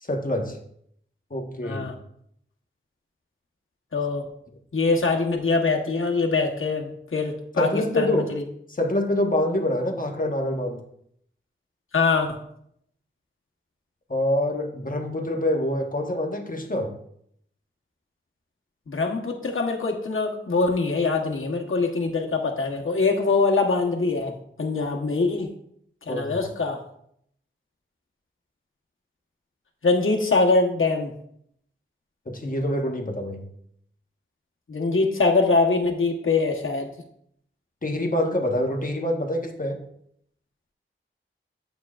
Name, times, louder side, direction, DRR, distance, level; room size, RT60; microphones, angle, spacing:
voice 1, 0.0-0.6 1.3-1.9 7.6-8.3 8.7-10.8 14.1-16.9 26.1-26.4 32.3-33.5 37.8-39.8, left 1 dB, 40° left, 2 dB, 1.3 m, -26 dB
voice 2, 1.6-1.9 3.9-4.3 4.7-7.7 8.0-8.4 11.9-12.4 18.9-25.5 26.1-26.8 29.8-31.1 34.7-36.9, left 3 dB, 75° left, 0 dB, 1.2 m, -23 dB
9.3 x 7.9 x 2.5 m, 0.70 s
wide cardioid pair, 65°, 21 cm